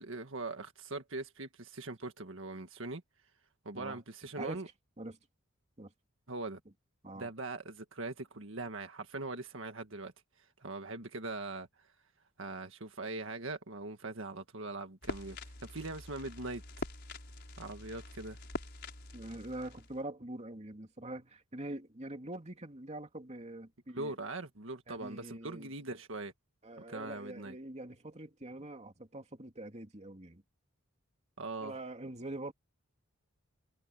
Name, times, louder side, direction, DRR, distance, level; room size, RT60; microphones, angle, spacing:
voice 1, 0.0-3.0 3.7-4.7 6.3-6.6 7.2-10.1 10.4-11.9 12.4-16.6 17.6-18.4 23.9-26.3 26.9-27.5 31.4-31.7, right 2 dB, 65° right, 1.8 m, -41 dB
sound 1, 15.0-20.0, left 2 dB, 55° left, 5.6 m, -45 dB
voice 2, 19.1-24.2 24.9-25.7 26.6-30.4 31.6-32.5, right 1 dB, 35° right, 2.6 m, -44 dB
head